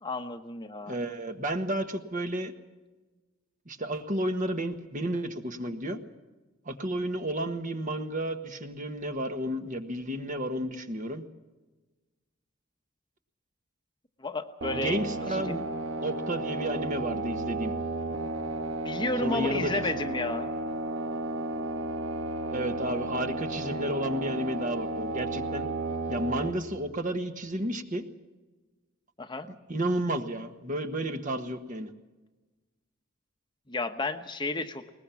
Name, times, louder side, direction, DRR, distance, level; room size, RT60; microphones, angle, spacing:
voice 1, 0.0-0.9 14.2-15.0 15.3-15.6 18.8-20.5 29.2-29.5 33.7-34.8, left 2 dB, 20° left, 7 dB, 1.0 m, -32 dB
voice 2, 0.8-2.5 3.7-6.0 6.6-11.2 14.7-15.6 16.0-17.7 19.2-20.0 22.5-25.7 26.1-28.0 29.4-31.9, right 1 dB, 40° right, 6 dB, 1.5 m, -32 dB
sound 1, 14.6-26.5, right 2 dB, 75° right, 2.1 m, -33 dB
21.5 x 20.0 x 7.2 m, 1.2 s
head